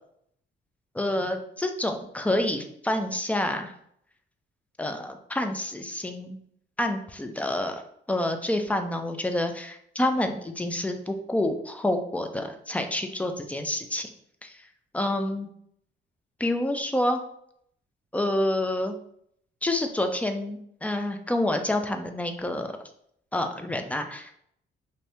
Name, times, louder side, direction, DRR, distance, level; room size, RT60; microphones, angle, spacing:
voice 1, 0.9-3.7 4.8-6.4 6.8-7.8 8.1-14.1 14.4-14.6 14.9-15.5 16.4-17.2 18.1-18.9 19.6-22.8 23.3-24.3, left 1 dB, 5° left, 6 dB, 0.4 m, -28 dB
2.7 x 2.6 x 3.4 m, 0.69 s
cardioid pair, 90°, 20 cm